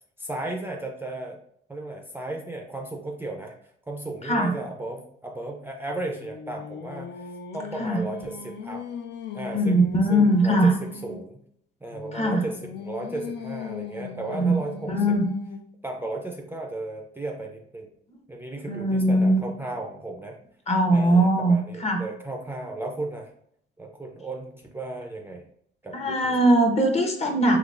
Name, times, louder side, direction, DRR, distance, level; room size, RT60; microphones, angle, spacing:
voice 1, 0.2-1.4 1.7-3.6 3.9-8.8 9.3-11.4 11.8-15.2 15.8-17.9 18.3-20.4 20.9-23.3 23.8-25.4 25.8-26.4, right 2 dB, 10° right, 1 dB, 0.4 m, -35 dB
Singing, 5.9-11.3 11.9-15.8, left 6 dB, 60° left, 0.4 m, -39 dB
voice 2, 9.5-10.7 12.1-12.5 14.3-14.6 14.9-15.2 18.7-19.4 20.7-22.0 25.9-27.6, right 1 dB, 35° left, 3 dB, 0.8 m, -21 dB
3.8 x 3.1 x 2.4 m, 0.67 s
cardioid pair, 90°, 20 cm